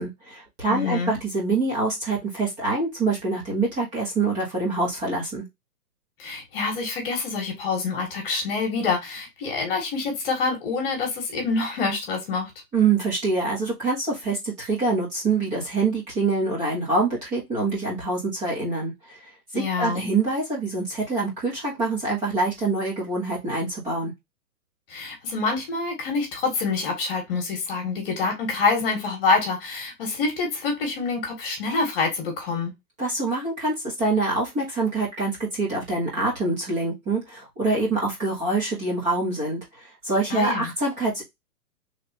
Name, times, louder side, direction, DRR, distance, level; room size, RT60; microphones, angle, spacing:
voice 1, 0.0-5.4 12.7-18.9 19.5-24.1 33.0-39.6 40.0-41.2, right 3 dB, 15° right, 1.3 m, -25 dB
voice 2, 0.7-1.2 6.2-12.5 19.5-20.1 24.9-32.7 40.3-40.7, left 4 dB, 35° left, 1.5 m, -26 dB
3.4 x 2.7 x 4.2 m
hypercardioid pair, 165°, 47 cm